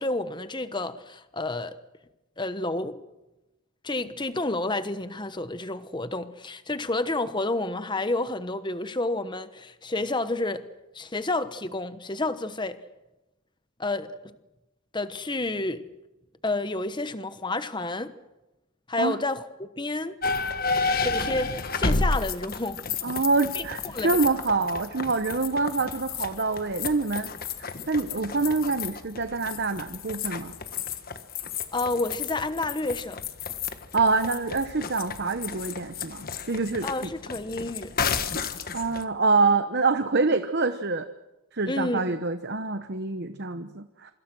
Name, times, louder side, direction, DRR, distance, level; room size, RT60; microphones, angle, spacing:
voice 1, 0.0-1.8 2.4-3.0 3.8-10.7 10.9-12.8 13.8-14.3 14.9-15.8 16.4-18.1 18.9-20.2 21.0-22.8 23.5-23.6 23.9-24.2 31.7-33.2 36.8-37.9 41.7-42.1, left 2 dB, 20° left, 1.1 m, -30 dB
sound 1, 20.2-39.0, left 4 dB, 40° left, 1.5 m, -32 dB
voice 2, 23.0-27.3 27.6-30.5 33.9-37.1 38.7-41.1 41.5-44.1, right 3 dB, 50° right, 1.0 m, -26 dB
27.0 x 25.5 x 6.2 m
head